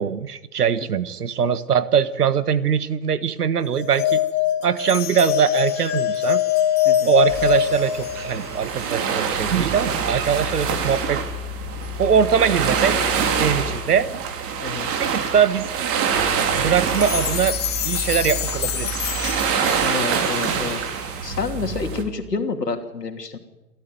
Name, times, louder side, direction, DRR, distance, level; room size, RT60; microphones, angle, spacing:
voice 1, 0.0-4.2 4.6-6.4 7.0-11.2 12.0-13.0 13.4-14.1 15.0-15.7 16.5-17.6 17.8-19.1, right 7 dB, 75° right, 15 dB, 1.6 m, -21 dB
sound 1, 3.7-8.5, left 11 dB, 50° left, 2.7 m, -22 dB
sound 2, 4.8-9.2 9.5-9.7 10.4-10.5 11.8-11.9 12.5-12.6 13.9-14.0 16.8-21.5, left 12 dB, 20° left, 1.5 m, -32 dB
sound 3, 7.3-22.0, right 6 dB, 30° right, 3.2 m, -25 dB
voice 2, 19.8-20.8 21.2-23.4, left 4 dB, 85° left, 6 dB, 2.9 m, -28 dB
27.5 x 13.5 x 9.4 m, 1.0 s
figure-of-eight pair, 115°, 47 cm